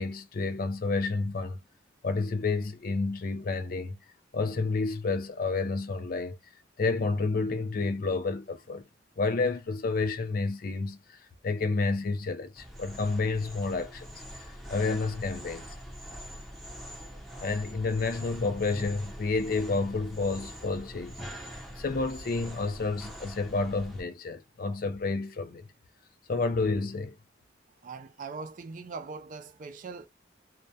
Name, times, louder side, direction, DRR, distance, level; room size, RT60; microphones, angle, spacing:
voice 1, 0.0-1.6 2.0-4.0 4.3-6.4 6.8-8.8 9.2-11.2 11.4-14.2 14.7-15.7 17.4-21.2 21.7-25.7 26.3-27.2, left 3 dB, 50° left, 0.5 m, -30 dB
sound 1, 12.6-24.0, equal, ahead, 0.6 m, -43 dB
voice 2, 27.8-30.1, right 4 dB, 45° right, 0.4 m, -41 dB
2.2 x 2.1 x 2.7 m
head